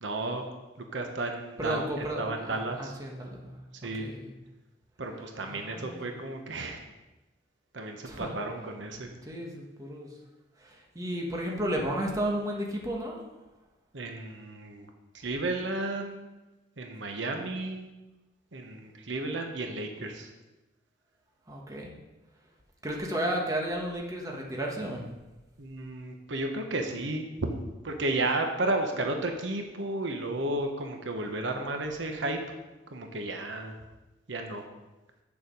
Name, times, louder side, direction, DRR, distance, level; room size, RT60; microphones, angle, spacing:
voice 1, 0.0-0.4 0.9-2.9 3.8-4.1 5.0-6.8 7.7-9.1 13.9-14.9 15.1-16.2 16.8-17.9 18.5-20.3 25.6-27.6 27.8-32.4 32.9-33.7 34.3-34.6, right 2 dB, 75° right, 4 dB, 1.1 m, -33 dB
voice 2, 1.6-3.6 4.0-4.4 5.4-6.0 8.0-8.3 9.2-10.1 10.6-13.2 21.5-21.9 22.8-25.0, right 1 dB, 20° right, -1 dB, 1.4 m, -33 dB
8.5 x 7.1 x 5.4 m, 1.1 s
head